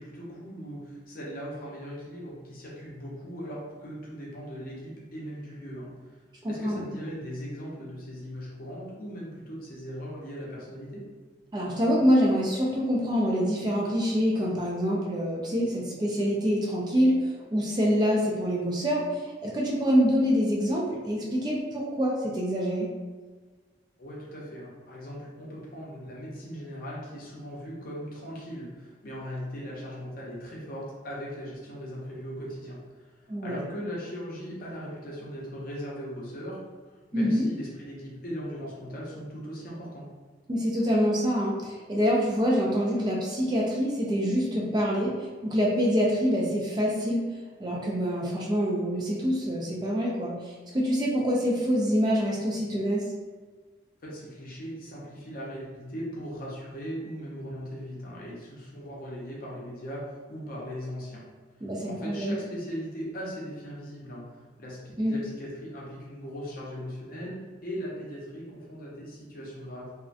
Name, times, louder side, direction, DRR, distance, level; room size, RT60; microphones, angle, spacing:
voice 1, 0.0-5.9 6.4-11.0 24.0-36.6 37.1-40.0 54.0-61.2 61.9-67.3 67.6-69.9, equal, 50° left, -5 dB, 0.6 m, -39 dB
voice 2, 6.4-6.9 11.5-22.9 33.3-33.6 37.1-37.5 40.5-47.2 47.6-53.0 61.6-62.4 65.0-65.1, equal, 20° right, -4 dB, 0.3 m, -26 dB
2.4 x 2.1 x 2.5 m, 1.4 s
head